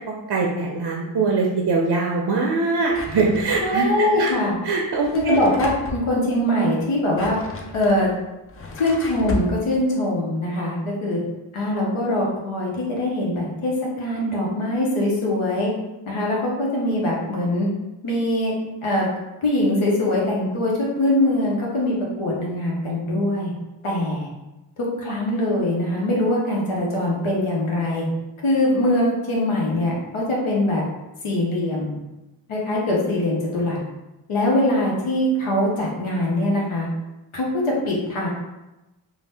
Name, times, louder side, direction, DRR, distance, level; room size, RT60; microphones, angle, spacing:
voice 1, 0.1-4.3 4.6-5.4, right 3 dB, 55° right, 0 dB, 0.5 m, -22 dB
Drawer open or close, 2.9-3.9 4.9-6.1 6.9-9.5, left 1 dB, 30° left, 0.5 m, -34 dB
voice 2, 3.6-4.5 5.1-7.4 7.7-8.1 8.8-11.2 11.5-15.7 16.1-17.7 18.0-18.5 18.8-19.1 19.4-23.5 23.8-24.3 24.8-28.1 28.4-30.8 31.2-31.9 32.5-33.8 34.3-36.9 37.3-38.3, left 1 dB, 80° left, -3 dB, 0.8 m, -22 dB
2.6 x 2.1 x 3.3 m, 1.0 s
cardioid pair, 45°, 49 cm